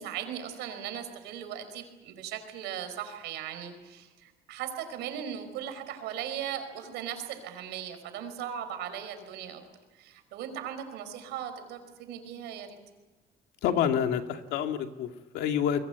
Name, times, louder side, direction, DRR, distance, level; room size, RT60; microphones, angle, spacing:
voice 1, 0.0-9.6 9.9-12.8, right 9 dB, 90° right, 8 dB, 5.3 m, -38 dB
voice 2, 13.6-15.8, left 8 dB, 85° left, 5 dB, 2.3 m, -28 dB
28.0 x 22.0 x 8.3 m, 1.2 s
cardioid pair, 110°, 17 cm